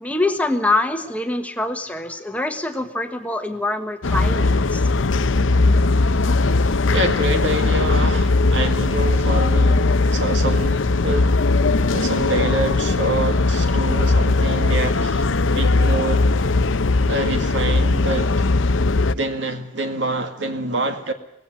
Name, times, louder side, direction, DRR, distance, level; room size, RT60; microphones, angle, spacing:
voice 1, 0.0-4.8, left 2 dB, 5° left, 1.3 m, -24 dB
sound 1, 4.0-19.1, left 3 dB, 75° left, 0.8 m, -19 dB
voice 2, 6.7-11.3 11.9-15.3 15.5-16.3 17.1-18.4 19.1-21.1, right 2 dB, 65° right, 1.9 m, -26 dB
19.5 x 16.5 x 9.1 m
head